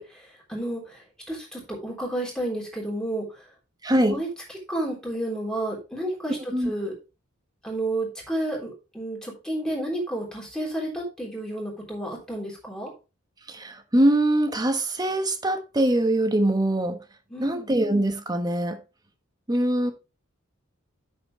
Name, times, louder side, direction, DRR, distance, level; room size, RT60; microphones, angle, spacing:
voice 1, 0.0-3.5 4.1-4.3 4.7-6.9 7.6-12.9 17.3-17.7, right 1 dB, 5° left, 3.5 m, -31 dB
voice 2, 3.8-4.2 6.5-6.7 13.5-17.0 17.4-18.8 19.5-19.9, right 1 dB, 20° right, 1.1 m, -23 dB
8.5 x 6.6 x 3.2 m
head